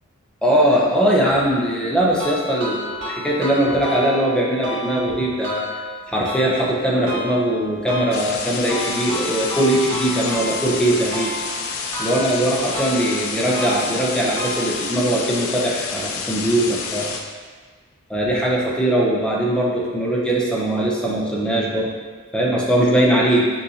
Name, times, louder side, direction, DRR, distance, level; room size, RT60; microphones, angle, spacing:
voice 1, 0.4-5.7 6.1-11.3 12.0-17.1 18.1-21.9 22.3-23.5, right 1 dB, 5° left, -4 dB, 0.6 m, -20 dB
sound 1, 2.2-15.2, equal, 60° right, 1.1 m, -32 dB
sound 2, 8.1-17.2, left 5 dB, 65° left, 0.4 m, -29 dB
6.5 x 2.5 x 2.8 m, 1.5 s
head